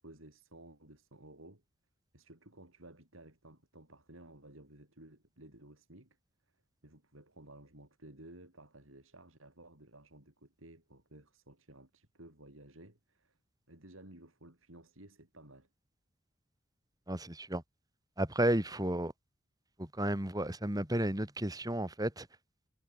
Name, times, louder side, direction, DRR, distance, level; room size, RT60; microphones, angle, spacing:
voice 1, 0.0-1.6 2.1-6.2 6.8-13.4 13.7-15.7 18.5-18.7, right 1 dB, 80° right, 6.3 m, -55 dB
voice 2, 17.1-17.6 18.2-19.1 19.8-22.3, right 1 dB, 20° right, 2.7 m, -32 dB
head